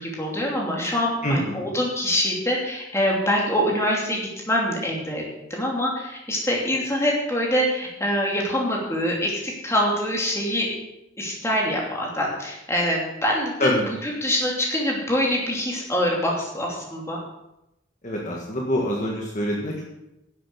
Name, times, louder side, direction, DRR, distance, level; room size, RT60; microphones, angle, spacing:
voice 1, 0.0-5.2 5.5-10.7 11.2-17.2, equal, 15° left, -2 dB, 2.8 m, -25 dB
voice 2, 1.2-1.7 13.6-13.8 18.0-19.8, equal, 40° left, -2 dB, 1.6 m, -25 dB
10.5 x 7.6 x 7.0 m, 0.89 s
head